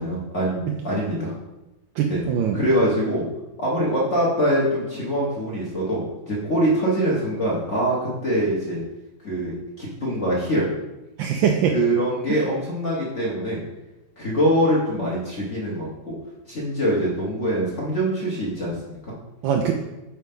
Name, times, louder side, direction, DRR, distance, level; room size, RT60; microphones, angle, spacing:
voice 1, 0.0-1.3 2.1-2.2 2.5-3.2 3.6-8.8 9.2-10.7 11.7-13.6 14.2-16.1 16.5-19.1, right 1 dB, 45° left, -6 dB, 1.3 m, -24 dB
voice 2, 2.0-2.6 11.2-11.8 12.3-12.4 19.4-19.7, right 8 dB, 80° right, 2 dB, 1.3 m, -22 dB
4.6 x 4.3 x 5.2 m, 1.0 s
omnidirectional pair, 2.1 m